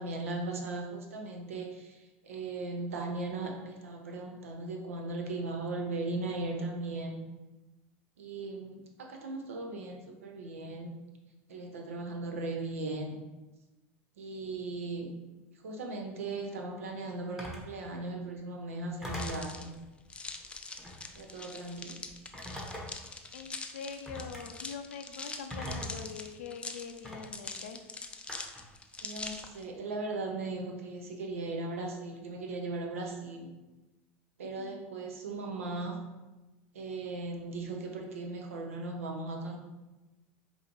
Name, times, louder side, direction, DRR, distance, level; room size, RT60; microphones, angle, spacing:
voice 1, 0.0-7.2 8.2-10.9 11.5-13.2 14.2-15.1 15.6-19.7 21.1-22.0 29.0-33.5 34.4-36.0 36.7-39.6, right 2 dB, 90° right, 2 dB, 0.6 m, -38 dB
Telephone, 17.4-17.7 19.0-19.5 20.8-21.1 22.3-23.1 24.1-24.4 25.5-26.1 27.0-27.2 28.3-28.7, equal, 5° right, 1.1 m, -40 dB
sound 1, 19.1-29.6, left 3 dB, 15° left, 0.4 m, -43 dB
voice 2, 23.3-27.8 34.6-34.8, left 6 dB, 85° left, 7 dB, 0.4 m, -43 dB
4.9 x 2.7 x 2.9 m, 1.1 s
hypercardioid pair, 90°, 7 cm